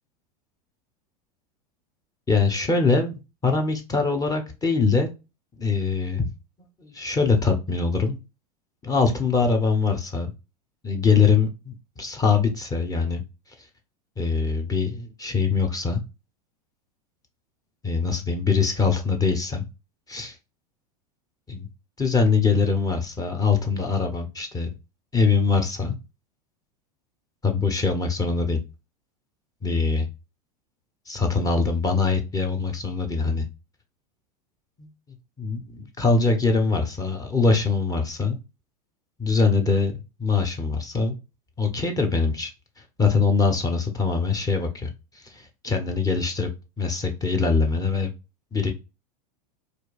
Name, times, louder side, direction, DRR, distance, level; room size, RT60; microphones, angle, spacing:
voice 1, 2.3-3.1 3.4-5.1 5.6-6.3 6.8-8.2 8.8-10.3 10.8-13.2 14.2-16.0 17.8-19.6 20.1-20.4 21.5-21.7 22.0-24.7 25.1-26.0 27.4-28.6 29.6-30.1 31.1-33.5 34.8-34.9 35.4-38.4 39.2-41.2 41.6-42.5 43.0-44.9 45.1-46.5 46.8-48.1 48.5-48.7, left 4 dB, 15° left, 4 dB, 0.9 m, -23 dB
4.4 x 2.7 x 2.4 m, 0.27 s
hypercardioid pair, 95°, 20 cm